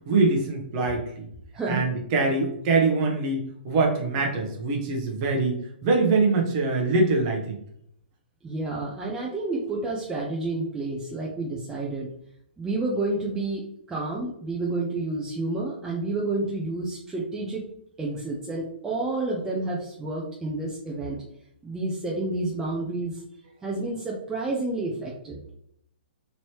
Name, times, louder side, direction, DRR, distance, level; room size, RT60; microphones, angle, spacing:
voice 1, 0.1-1.3 1.7-7.6, right 3 dB, 35° right, 1 dB, 0.8 m, -24 dB
voice 2, 1.5-1.8 8.4-12.1 12.6-17.6 18.0-21.2 21.6-23.2 23.6-25.5, right 2 dB, 10° right, -4 dB, 0.5 m, -30 dB
3.1 x 2.9 x 2.8 m, 0.72 s
hypercardioid pair, 145°, 6 cm